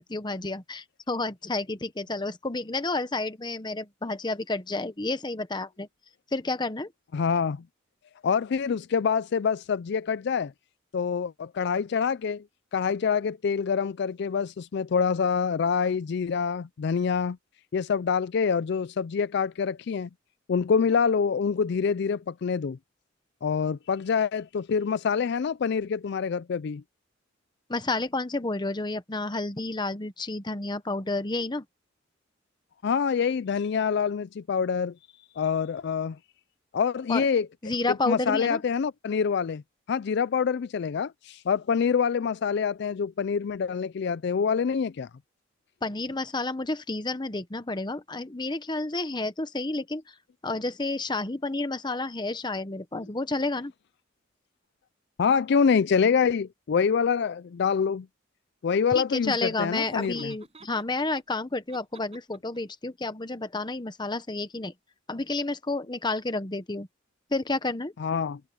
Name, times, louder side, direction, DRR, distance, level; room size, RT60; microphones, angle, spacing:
voice 1, 0.0-5.9 6.3-6.9 27.7-31.6 37.1-37.3 37.6-38.6 45.8-50.1 50.4-53.7 58.9-64.7 65.1-66.9 67.3-67.9, left 2 dB, 25° left, 1.0 m, -30 dB
voice 2, 7.1-7.6 8.2-10.5 10.9-12.4 12.7-17.4 17.7-20.1 20.5-22.8 23.4-26.8 32.8-34.9 35.4-36.2 36.7-37.5 37.9-39.6 39.9-45.1 52.9-53.0 55.2-58.1 58.6-60.3 68.0-68.4, left 6 dB, 60° left, 0.4 m, -26 dB
Laughter, 59.7-61.2 61.7-62.6, right 2 dB, 30° right, 7.5 m, -49 dB
head